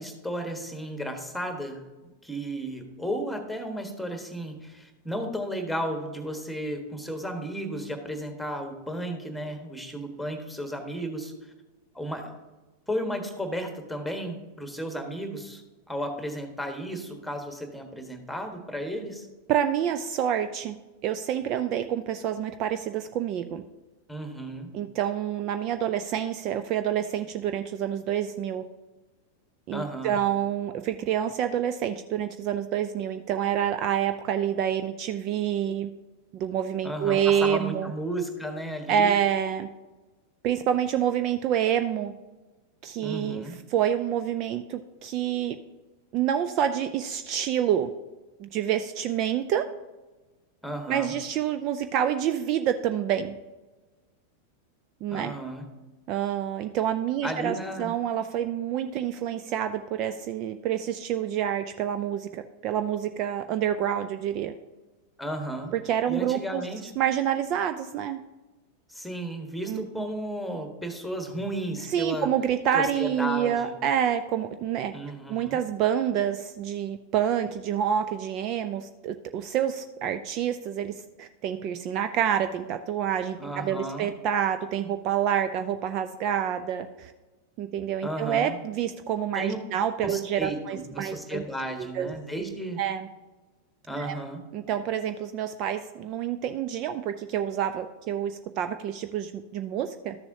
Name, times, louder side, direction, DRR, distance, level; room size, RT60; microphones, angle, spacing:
voice 1, 0.0-1.9 2.2-11.3 11.9-12.4 12.9-15.6 15.9-19.3 24.1-24.7 29.7-30.2 36.8-39.1 43.0-43.6 50.6-51.1 55.1-55.6 57.2-57.9 65.2-65.7 66.1-66.9 68.9-72.3 72.7-73.7 74.9-75.6 83.4-84.1 88.0-88.6 89.3-89.6 90.0-92.8 93.9-94.4, right 1 dB, ahead, 6 dB, 1.4 m, -34 dB
voice 2, 19.5-20.8 21.0-23.6 24.7-28.6 29.7-35.9 36.3-37.9 38.9-39.7 40.4-42.1 42.8-45.6 46.1-47.9 48.4-49.7 50.9-53.4 55.0-55.3 56.1-64.5 65.7-66.6 67.0-68.2 69.7-70.0 71.8-74.9 75.3-87.1 87.6-91.4 91.8-92.1 92.8-93.1 94.0-94.1 94.5-100.2, right 9 dB, 40° right, 9 dB, 0.4 m, -27 dB
13.0 x 6.9 x 2.7 m, 1.2 s
figure-of-eight pair, 90°, 0 cm